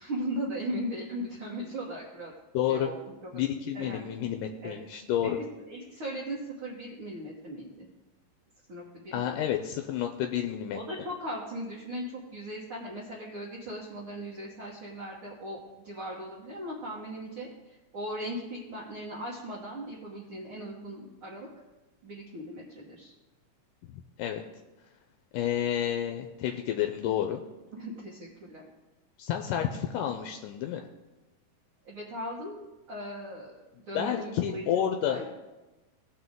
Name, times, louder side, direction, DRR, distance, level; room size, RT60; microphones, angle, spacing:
voice 1, 0.0-2.3 2.7-3.4 3.7-4.0 4.6-4.8 5.2-5.3 5.7-7.9 8.7-9.4 10.7-15.6 15.8-21.5 22.0-23.1 27.7-28.6 31.8-33.5 33.9-34.6 35.1-35.2, right 1 dB, 55° right, -5 dB, 1.6 m, -38 dB
voice 2, 2.5-2.9 3.3-5.4 9.1-10.8 23.9-24.4 25.3-27.4 29.2-30.8 34.0-35.3, left 10 dB, 85° left, 5 dB, 2.1 m, -30 dB
17.5 x 5.9 x 3.7 m, 1.1 s
omnidirectional pair, 3.9 m